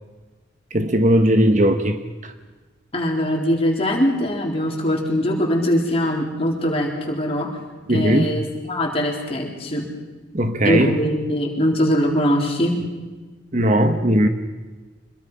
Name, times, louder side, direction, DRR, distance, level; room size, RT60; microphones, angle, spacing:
voice 1, 0.7-2.3 7.9-8.3 10.3-11.0 13.5-14.3, right 1 dB, 40° right, 8 dB, 1.1 m, -18 dB
voice 2, 2.9-7.5 7.9-9.9 10.6-12.8, equal, 30° left, -1 dB, 4.0 m, -22 dB
25.5 x 22.0 x 5.6 m, 1.3 s
head